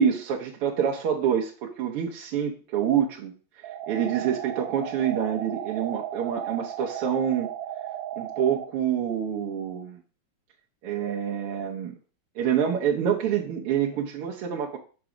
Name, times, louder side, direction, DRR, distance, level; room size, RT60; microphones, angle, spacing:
voice 1, 0.0-3.3 3.9-7.5 8.2-10.0 10.8-12.0 12.4-14.8, right 8 dB, 90° right, 0 dB, 1.8 m, -26 dB
sound 1, 3.6-8.7, right 10 dB, 70° right, 1.4 m, -35 dB
5.3 x 5.0 x 5.9 m, 0.39 s
omnidirectional pair, 2.4 m